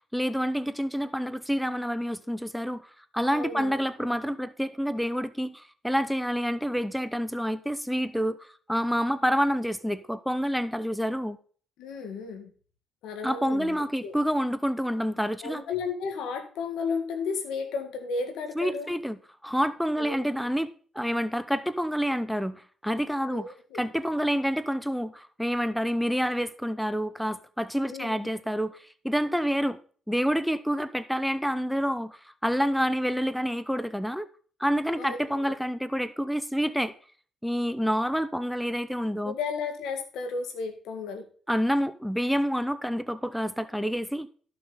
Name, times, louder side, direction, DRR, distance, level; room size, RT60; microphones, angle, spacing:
voice 1, 0.1-2.9 3.1-11.4 13.2-15.6 18.6-20.7 20.9-29.8 30.1-34.3 34.6-36.9 37.4-39.3 41.5-44.3, equal, ahead, 0.7 m, -28 dB
voice 2, 3.3-3.7 11.8-12.5 13.0-14.1 15.4-18.9 20.0-20.3 23.3-23.8 27.9-28.1 35.0-35.5 39.2-41.2, left 5 dB, 85° left, 1.9 m, -33 dB
13.0 x 6.1 x 4.1 m
cardioid pair, 90°, 0 cm